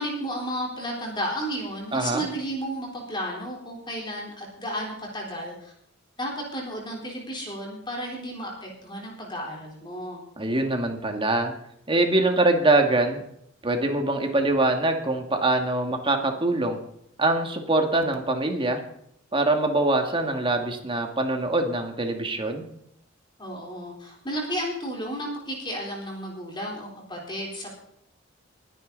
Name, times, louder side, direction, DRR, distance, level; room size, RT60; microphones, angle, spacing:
voice 1, 0.0-5.7 6.2-10.2 23.4-27.7, equal, 25° left, -2 dB, 4.0 m, -33 dB
voice 2, 1.9-2.2 10.4-11.5 11.9-13.2 13.6-16.8 17.2-18.8 19.3-22.7, right 2 dB, 25° right, 4 dB, 2.2 m, -23 dB
22.0 x 9.9 x 4.1 m, 0.72 s
head